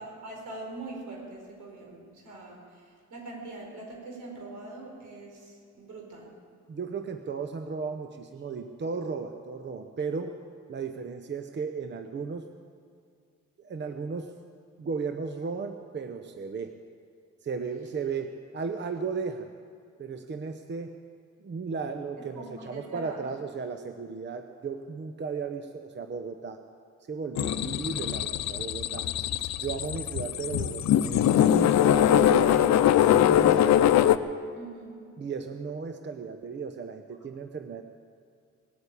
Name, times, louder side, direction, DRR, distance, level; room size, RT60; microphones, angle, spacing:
voice 1, 0.0-6.3 22.3-23.2 34.5-34.9, right 2 dB, 75° right, -1 dB, 5.0 m, -43 dB
voice 2, 6.7-10.3 10.7-12.5 13.6-14.3 14.8-16.7 17.4-19.5 20.0-20.9 21.4-26.6 27.1-29.1 29.6-33.8 35.2-37.8, right 5 dB, 35° right, 7 dB, 0.9 m, -35 dB
sound 1, 27.4-34.2, left 11 dB, 65° left, 0.7 m, -22 dB
19.0 x 8.8 x 8.5 m, 2.3 s
cardioid pair, 90°, 30 cm